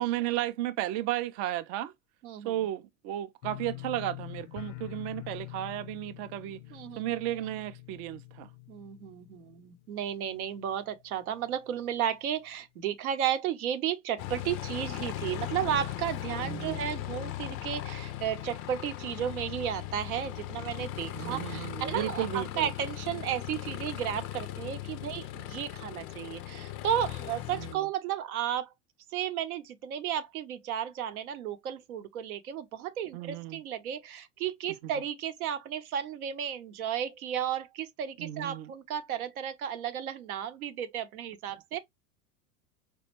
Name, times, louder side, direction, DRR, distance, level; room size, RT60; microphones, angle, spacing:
voice 1, 0.0-1.9 2.4-6.6 7.0-8.5 16.4-16.9 21.1-22.7 27.5-27.9 33.1-33.6 38.2-38.7, right 13 dB, 50° right, 0.5 m, -34 dB
voice 2, 2.2-2.5 6.7-7.0 8.7-28.7 29.1-41.8, right 9 dB, 80° right, 0.8 m, -33 dB
sound 1, 3.4-10.3 10.6-11.1 11.5-11.6, left 17 dB, 75° left, 0.6 m, -45 dB
Aircraft, 14.2-27.7, left 14 dB, 35° left, 0.4 m, -38 dB
4.3 x 2.3 x 2.9 m
hypercardioid pair, 110°, 44 cm